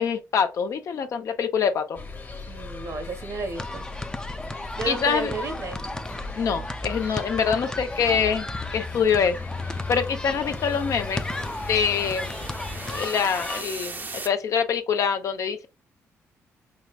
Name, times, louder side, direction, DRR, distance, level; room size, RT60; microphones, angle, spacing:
voice 1, 0.0-2.0 4.9-5.3 6.4-9.4 9.9-11.3 11.7-12.5 12.9-15.7, left 6 dB, 65° left, 0.7 m, -25 dB
sound 1, 2.0-13.1, left 3 dB, 35° left, 1.1 m, -37 dB
voice 2, 2.5-3.9 4.8-5.8, right 4 dB, 50° right, 1.0 m, -32 dB
sound 2, 3.5-13.6, left 1 dB, 10° left, 0.5 m, -35 dB
sound 3, 8.3-14.3, right 3 dB, 30° right, 0.7 m, -41 dB
4.8 x 3.1 x 2.4 m
supercardioid pair, 60°, 6 cm